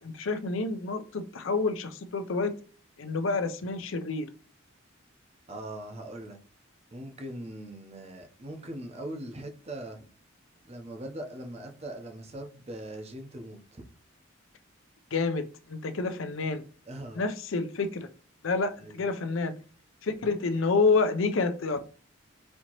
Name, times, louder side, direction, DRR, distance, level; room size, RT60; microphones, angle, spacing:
voice 1, 0.0-2.5 3.0-4.3 15.1-16.6 17.1-18.1 18.4-19.5 20.0-21.8, left 4 dB, 75° left, 0.5 m, -28 dB
voice 2, 5.5-6.4 6.9-10.0 10.6-13.8 16.9-17.2 18.8-19.0, right 1 dB, 30° right, 0.7 m, -41 dB
4.3 x 2.9 x 2.9 m
head